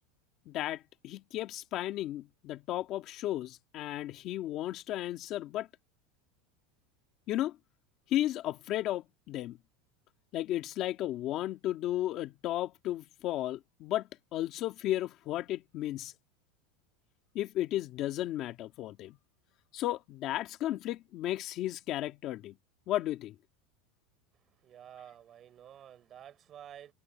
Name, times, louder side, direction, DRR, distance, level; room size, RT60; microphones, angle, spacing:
voice 1, 0.5-5.7 7.3-7.6 8.1-9.6 10.3-16.1 17.3-19.2 19.7-22.6 22.9-23.4, left 14 dB, 35° left, 1.9 m, -34 dB
voice 2, 24.6-26.9, right 10 dB, 25° right, 3.6 m, -51 dB
supercardioid pair, 175°, 0 cm